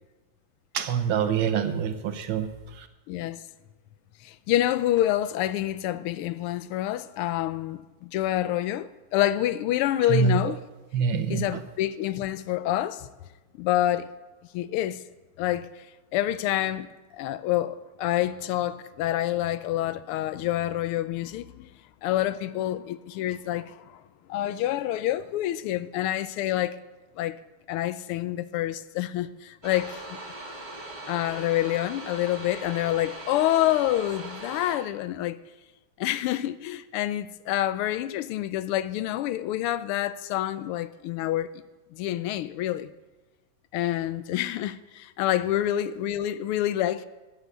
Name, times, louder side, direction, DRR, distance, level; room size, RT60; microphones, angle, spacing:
voice 1, 0.7-2.9 10.1-10.5 10.9-11.6, right 6 dB, 70° right, 1.6 m, -26 dB
voice 2, 3.1-3.4 4.2-10.6 11.3-13.1 13.6-14.1 14.5-15.0 15.4-15.9 16.1-21.7 22.0-24.0 24.3-26.8 27.2-27.4 27.7-30.2 31.1-35.4 36.0-41.6 41.9-42.9 43.7-47.1, left 13 dB, 85° left, 1.5 m, -27 dB
sound 1, 29.6-34.8, right 2 dB, 20° right, 2.2 m, -40 dB
13.5 x 8.3 x 8.1 m
omnidirectional pair, 2.4 m